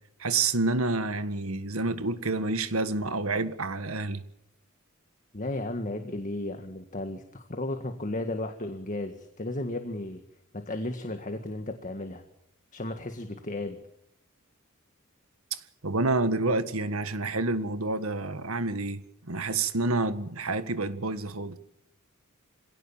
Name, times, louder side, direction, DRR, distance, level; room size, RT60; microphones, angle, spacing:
voice 1, 0.2-4.2 15.5-21.6, right 3 dB, 75° right, 1.7 m, -28 dB
voice 2, 5.3-10.2 10.5-12.2 12.7-13.8, left 1 dB, 35° left, 1.8 m, -34 dB
26.0 x 17.5 x 7.3 m
head